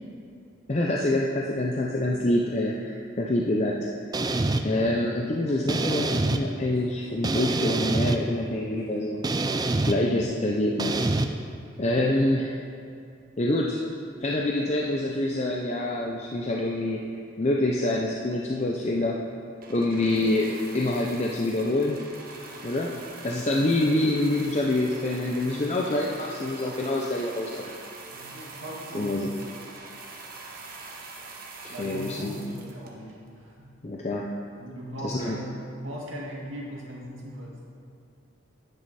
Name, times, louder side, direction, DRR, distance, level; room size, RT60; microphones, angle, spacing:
voice 1, 0.7-3.9 4.6-9.2 9.8-11.1 11.8-12.5 13.4-13.8 14.2-17.0 17.4-19.2 19.7-22.0 22.6-22.9 23.2-27.7 28.9-29.3 31.6-32.4 33.8-34.3 35.0-35.4, left 1 dB, 35° left, -1 dB, 0.5 m, -26 dB
sound 1, 4.1-4.6 5.7-6.4 7.2-8.2 9.2-10.0 10.8-11.3, right 2 dB, 20° right, 0.4 m, -25 dB
voice 2, 4.6-5.0 6.7-6.8 8.8-8.9 22.8-22.9 28.1-29.5 31.7-33.7 34.6-37.6, equal, 75° right, -3 dB, 2.0 m, -39 dB
sound 2, 19.6-33.3 34.0-34.1, right 3 dB, 45° right, 1.2 m, -44 dB
10.5 x 9.0 x 4.2 m, 2.5 s
head